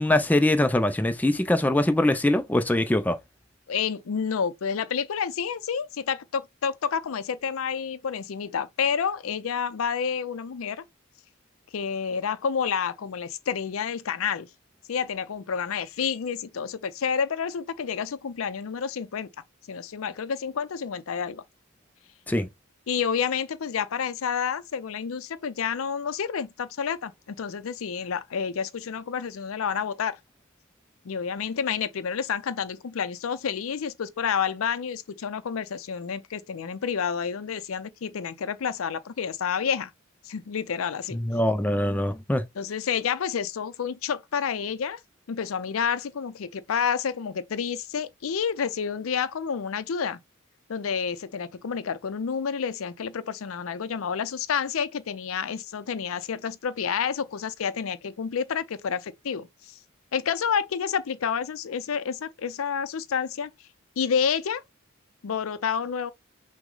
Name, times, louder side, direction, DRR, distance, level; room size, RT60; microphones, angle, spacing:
voice 1, 0.0-3.2 22.3-22.5 41.3-42.4, left 1 dB, 10° left, 0.4 m, -22 dB
voice 2, 3.7-10.8 11.7-14.5 14.9-19.3 19.7-21.4 22.9-30.2 31.0-39.9 40.2-41.2 42.5-45.0 45.3-50.2 50.7-59.8 60.1-63.5 64.0-64.6 65.2-66.1, left 7 dB, 80° left, 0.5 m, -29 dB
6.1 x 2.1 x 3.8 m
head